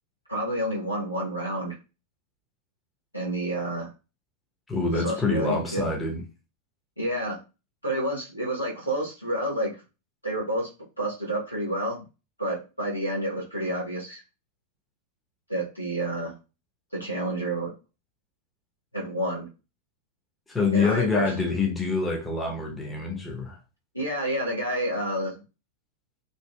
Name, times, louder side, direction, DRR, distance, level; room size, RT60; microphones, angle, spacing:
voice 1, 0.3-1.7 3.1-3.9 4.9-5.9 7.0-7.4 7.8-9.7 10.2-10.7 11.0-12.0 12.4-14.2 15.5-16.3 16.9-17.7 18.9-19.5 20.7-21.3 23.9-25.4, right 1 dB, 85° left, 1.1 m, -29 dB
voice 2, 4.7-6.2 20.5-23.6, left 4 dB, 10° left, 0.7 m, -26 dB
2.7 x 2.6 x 2.2 m
figure-of-eight pair, 90°, 0 cm